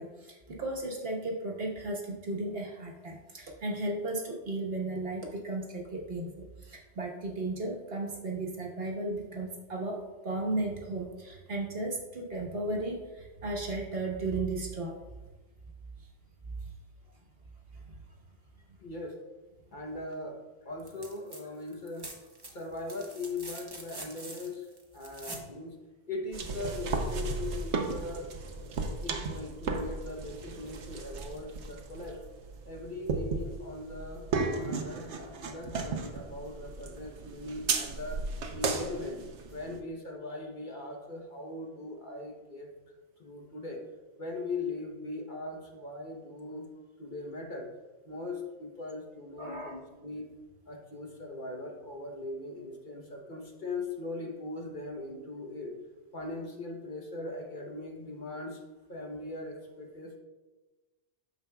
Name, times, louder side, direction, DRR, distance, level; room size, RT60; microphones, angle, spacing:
voice 1, 0.0-10.0 10.2-15.0 49.4-49.8, right 2 dB, 55° right, -1 dB, 1.4 m, -35 dB
voice 2, 18.8-19.2 19.7-22.1 22.5-24.7 24.9-25.8 26.1-28.3 28.6-32.2 32.6-38.2 38.5-39.2 39.5-42.7 43.2-43.8 44.2-46.7 47.0-47.7 48.0-50.2 50.7-55.8 56.1-58.6 58.9-60.2, left 2 dB, 45° left, 1 dB, 1.0 m, -40 dB
sound 1, 20.8-21.4 21.7-25.5 27.2-27.3, right 2 dB, 25° right, 0.8 m, -45 dB
sound 2, 26.3-39.8, right 4 dB, 75° right, 1.1 m, -35 dB
9.2 x 6.8 x 2.3 m, 1.2 s
omnidirectional pair, 1.2 m